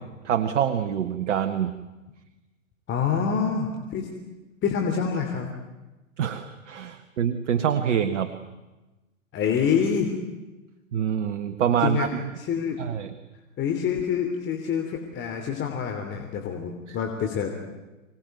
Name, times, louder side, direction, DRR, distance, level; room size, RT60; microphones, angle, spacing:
voice 1, 0.2-1.7 6.2-8.3 10.9-12.2 12.8-13.1, right 9 dB, 65° right, 9 dB, 1.8 m, -25 dB
voice 2, 2.9-4.1 4.6-5.5 9.3-10.2 11.8-12.1 12.4-12.8 13.6-17.5, left 7 dB, 30° left, 3 dB, 3.2 m, -26 dB
24.5 x 20.0 x 9.3 m, 1.1 s
hypercardioid pair, 110°, 40 cm